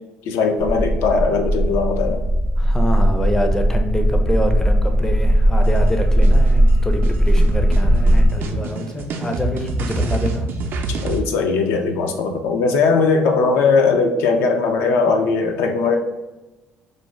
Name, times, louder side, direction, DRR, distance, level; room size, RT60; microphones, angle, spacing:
voice 1, 0.3-2.2 10.9-16.0, left 4 dB, 85° left, 4 dB, 0.4 m, -19 dB
sound 1, 0.6-8.3, right 1 dB, 55° left, 0.7 m, -17 dB
voice 2, 2.6-10.5, left 1 dB, 10° left, 4 dB, 0.4 m, -25 dB
sound 2, 5.6-11.2, right 2 dB, 60° right, 0.3 m, -26 dB
2.5 x 2.1 x 3.0 m, 1.1 s
cardioid pair, 100°, 4 cm